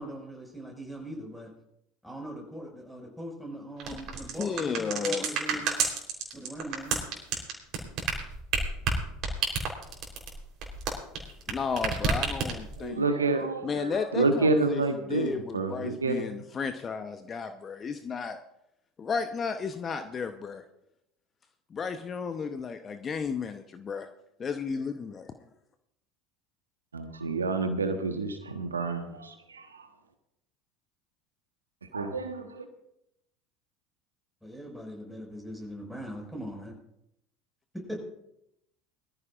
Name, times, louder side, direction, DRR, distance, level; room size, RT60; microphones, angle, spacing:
voice 1, 0.0-1.5 2.0-5.6 6.3-7.0 34.4-36.8 37.7-38.0, equal, ahead, 0 dB, 5.6 m, -40 dB
sound 1, 3.8-11.5 11.8-12.8, right 5 dB, 50° right, 3.7 m, -29 dB
voice 2, 4.4-5.2 11.5-13.1 13.6-14.8 15.1-18.4 19.0-20.6 21.7-24.1 24.4-25.3, left 5 dB, 30° left, 8 dB, 0.9 m, -33 dB
voice 3, 12.8-16.2 26.9-29.7 31.9-32.7, right 3 dB, 85° right, 6 dB, 1.2 m, -29 dB
22.0 x 14.0 x 2.5 m, 0.80 s
figure-of-eight pair, 75°, 0 cm